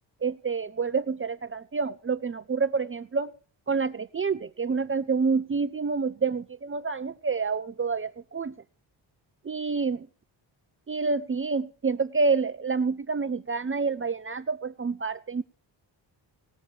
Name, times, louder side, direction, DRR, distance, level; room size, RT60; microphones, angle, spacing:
voice 1, 0.2-3.3 3.7-8.5 9.4-10.1 10.9-15.4, right 4 dB, 30° right, 0.6 m, -28 dB
18.5 x 6.6 x 9.1 m
wide cardioid pair, 135°, 45 cm